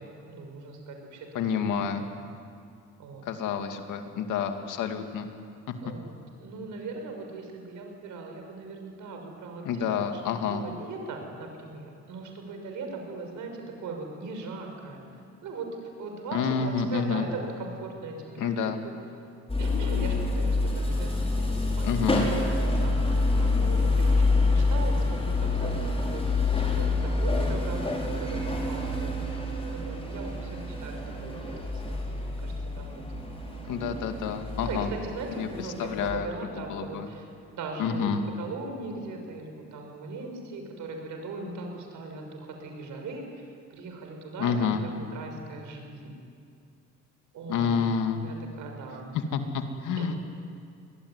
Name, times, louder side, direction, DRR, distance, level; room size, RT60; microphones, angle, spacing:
voice 1, 0.0-2.2 3.0-3.2 5.8-6.1 6.4-15.7 16.0-18.9 19.6-22.2 22.7-26.4 26.7-29.4 29.7-33.0 33.6-34.0 34.6-46.1 47.3-47.9 48.2-49.1 50.0-50.2, right 3 dB, 80° right, 3 dB, 6.4 m, -39 dB
voice 2, 1.3-2.1 3.3-5.3 9.6-10.6 16.3-17.3 18.4-18.8 21.8-22.3 33.7-34.9 35.3-35.5 35.8-36.3 36.7-37.1 37.8-38.2 44.4-44.8 47.5-48.3 49.1-50.2, left 6 dB, 85° left, 6 dB, 2.4 m, -28 dB
sound 1, 19.5-36.1, left 3 dB, 20° left, 5.8 m, -27 dB
25.0 x 21.0 x 9.8 m, 2.3 s
cardioid pair, 90°, 30 cm